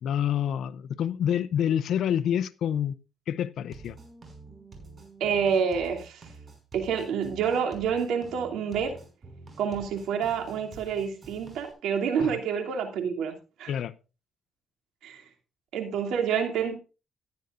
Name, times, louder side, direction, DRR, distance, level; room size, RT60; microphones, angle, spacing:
voice 1, 0.0-3.0 3.3-4.0 12.2-12.4 13.7-13.9, left 9 dB, 70° left, 0.6 m, -27 dB
sound 1, 3.7-11.7, right 3 dB, 35° right, 5.7 m, -48 dB
voice 2, 5.2-6.3 6.7-9.0 9.6-13.7 15.0-15.2 15.7-16.8, right 7 dB, 85° right, 2.8 m, -28 dB
16.0 x 10.5 x 2.5 m
cardioid pair, 90°, 0 cm